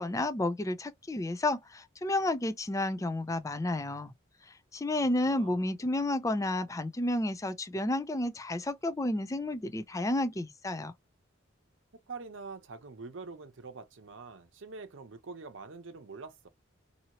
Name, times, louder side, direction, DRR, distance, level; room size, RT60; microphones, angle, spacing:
voice 1, 0.0-4.1 4.7-10.9, left 1 dB, 15° left, 0.4 m, -31 dB
voice 2, 5.2-5.7 12.1-16.5, right 4 dB, 65° right, 0.7 m, -45 dB
2.8 x 2.7 x 2.8 m
head